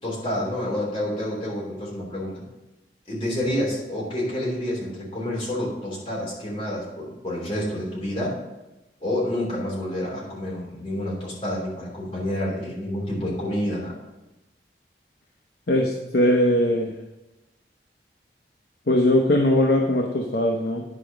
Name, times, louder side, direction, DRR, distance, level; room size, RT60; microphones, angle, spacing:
voice 1, 0.0-2.4 3.1-8.4 9.0-13.9, left 1 dB, 30° left, -5 dB, 3.1 m, -28 dB
voice 2, 15.7-16.9 18.9-20.8, left 1 dB, 65° left, 2 dB, 0.8 m, -20 dB
10.0 x 5.0 x 5.9 m, 1.0 s
head